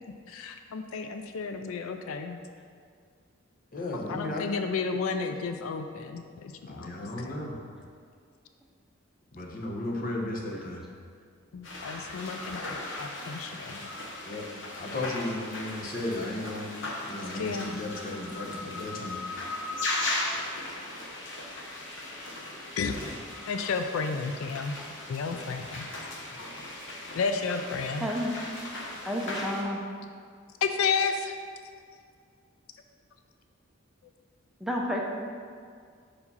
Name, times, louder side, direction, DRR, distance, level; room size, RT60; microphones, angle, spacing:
voice 1, 0.3-2.4 4.1-7.0 7.2-7.3 11.5-13.9 17.3-17.7 22.8-23.0 23.5-24.7 25.1-25.9 27.1-28.1 30.6-31.4, left 5 dB, 85° left, 7 dB, 0.4 m, -32 dB
voice 2, 3.7-4.5 6.7-7.6 9.3-10.8 14.2-14.5 14.8-19.2 23.0-23.2, left 2 dB, 45° left, -1 dB, 0.9 m, -35 dB
sound 1, 11.6-29.6, left 2 dB, 60° left, 1.1 m, -37 dB
voice 3, 28.0-28.4 29.1-29.8 34.6-35.0, equal, ahead, -2 dB, 0.6 m, -30 dB
5.0 x 4.8 x 5.5 m, 2.1 s
head